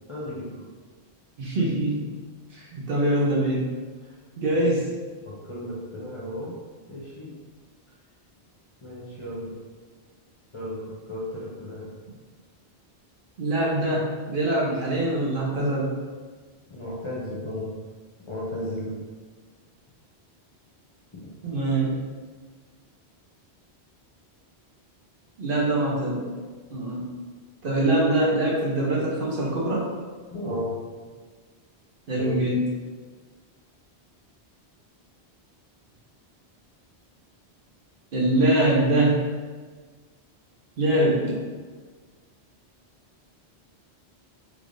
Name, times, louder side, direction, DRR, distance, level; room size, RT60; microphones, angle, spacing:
voice 1, 0.1-0.7 4.0-4.1 4.5-4.7 5.2-6.5 6.9-7.3 8.8-9.5 10.5-11.9 16.7-17.7 18.3-19.0 30.3-30.8 32.2-32.5, left 1 dB, 35° left, -6 dB, 0.7 m, -34 dB
voice 2, 1.4-2.1 2.5-3.6 4.4-4.9 13.4-15.9 21.4-22.0 25.4-26.3 26.7-27.1 27.6-29.9 32.1-32.6 38.1-39.3 40.8-41.4, right 1 dB, 55° right, -4 dB, 0.9 m, -23 dB
3.4 x 3.4 x 2.5 m, 1.4 s
omnidirectional pair, 1.1 m